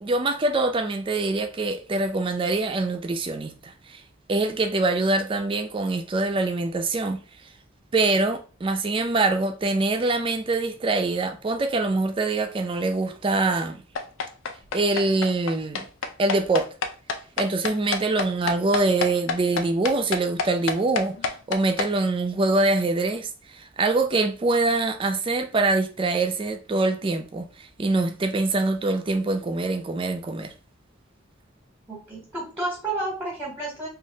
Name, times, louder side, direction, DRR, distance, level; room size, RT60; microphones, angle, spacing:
voice 1, 0.0-4.0 4.3-7.2 7.9-13.8 14.7-15.9 16.2-16.7 17.4-21.2 21.5-30.5, right 2 dB, 25° right, 0.4 m, -24 dB
sound 1, 14.0-21.9, left 4 dB, 80° left, 0.4 m, -28 dB
voice 2, 31.9-33.9, right 2 dB, 5° right, 1.0 m, -31 dB
3.1 x 2.4 x 2.7 m
head